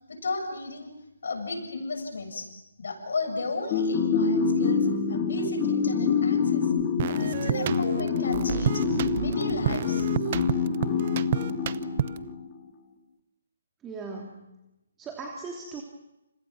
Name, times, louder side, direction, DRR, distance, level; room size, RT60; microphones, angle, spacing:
voice 1, 0.1-0.9 1.2-2.5 2.8-6.7 7.1-8.8 9.1-10.1, left 3 dB, 65° left, 4 dB, 7.2 m, -34 dB
sound 1, 3.7-12.5, left 6 dB, 30° left, 3.0 m, -26 dB
sound 2, 7.0-12.3, right 10 dB, 40° right, 0.9 m, -30 dB
voice 2, 13.8-14.4 15.0-15.8, right 4 dB, 15° right, 0 dB, 3.0 m, -38 dB
29.5 x 29.5 x 6.1 m, 0.93 s
figure-of-eight pair, 140°, 0 cm